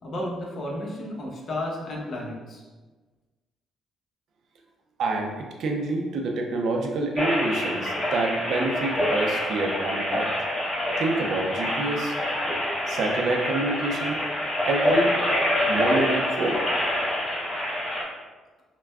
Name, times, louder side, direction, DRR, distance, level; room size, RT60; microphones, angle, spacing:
voice 1, 0.0-2.6, left 1 dB, 55° left, -2 dB, 0.9 m, -32 dB
voice 2, 5.0-10.3 11.0-12.1 12.9-14.2 14.6-15.1 15.7-16.6, right 2 dB, 70° right, 1 dB, 0.5 m, -27 dB
sound 1, 7.2-18.0, left 1 dB, 30° left, 1.4 m, -26 dB
5.7 x 2.2 x 2.3 m, 1.3 s
cardioid pair, 90°, 0 cm